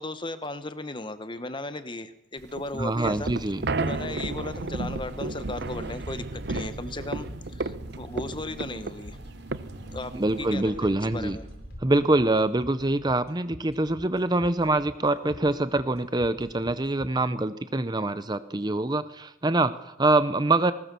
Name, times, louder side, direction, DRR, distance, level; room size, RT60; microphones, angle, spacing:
voice 1, 0.0-3.3 3.8-7.3 7.5-9.2 9.9-10.1 10.4-11.5, left 2 dB, 25° left, 11 dB, 1.1 m, -36 dB
sound 1, 2.4-10.6, right 3 dB, 55° right, 0.8 m, -33 dB
sound 2, 2.7-17.1, equal, 50° left, 4.1 m, -46 dB
voice 2, 2.7-3.6 10.1-11.4 11.8-20.7, right 2 dB, 20° right, 12 dB, 0.6 m, -25 dB
Car / Engine, 3.0-12.2, right 1 dB, 70° right, 3.6 m, -44 dB
19.5 x 19.5 x 6.9 m, 0.91 s
head